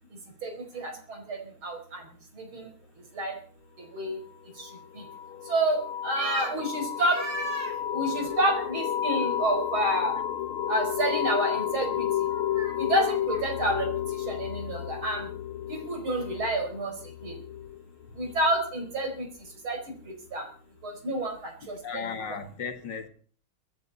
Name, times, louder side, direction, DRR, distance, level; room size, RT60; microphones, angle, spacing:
voice 1, 0.4-0.9 1.3-1.4 1.6-2.0 2.5-2.7 3.2-3.3 3.9-4.1 5.5-5.8 6.0-10.1 10.7-12.1 12.6-13.9 14.3-15.2 15.7-16.9 17.2-17.3 18.2-19.1 19.6-19.8 20.3-20.4 20.8-21.3 21.9-22.0 22.3-22.4, right 1 dB, 75° right, 5.6 m, -28 dB
sound 1, 4.6-19.1, left 10 dB, 80° left, 1.7 m, -32 dB
voice 2, 21.6-23.1, left 6 dB, 60° left, 2.4 m, -36 dB
24.0 x 11.5 x 4.1 m
omnidirectional pair, 2.3 m